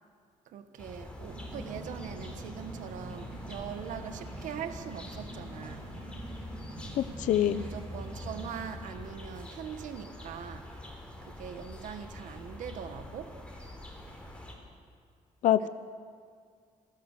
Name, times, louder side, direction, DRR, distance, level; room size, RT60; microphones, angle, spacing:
voice 1, 0.4-5.9 7.5-10.9 11.2-13.7 15.6-15.7, right 8 dB, 80° right, 8 dB, 1.4 m, -42 dB
sound 1, 0.8-14.5, left 1 dB, 10° left, 4.1 m, -45 dB
sound 2, 1.2-8.7, right 2 dB, 50° right, 6.1 m, -45 dB
voice 2, 7.0-7.6 15.4-15.7, left 11 dB, 80° left, 14 dB, 0.6 m, -25 dB
27.0 x 19.0 x 6.7 m, 2.1 s
cardioid pair, 145°, 13 cm